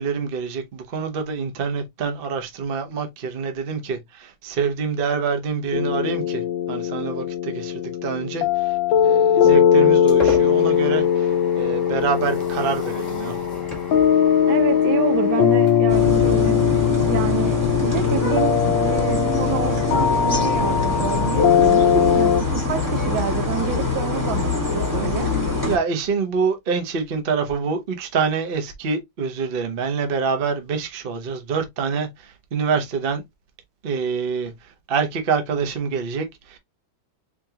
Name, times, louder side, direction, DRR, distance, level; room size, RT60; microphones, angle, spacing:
voice 1, 0.0-8.8 9.0-13.4 25.6-33.2 33.8-36.6, right 5 dB, 50° right, 0.6 m, -26 dB
sound 1, 5.7-22.4, left 8 dB, 75° left, 1.2 m, -20 dB
sound 2, 9.3-16.8, left 2 dB, 15° left, 1.4 m, -36 dB
voice 2, 14.4-16.6 17.1-25.3, right 10 dB, 75° right, 1.4 m, -28 dB
sound 3, 15.9-25.8, left 3 dB, 10° right, 1.4 m, -24 dB
4.4 x 2.9 x 2.8 m
omnidirectional pair, 2.3 m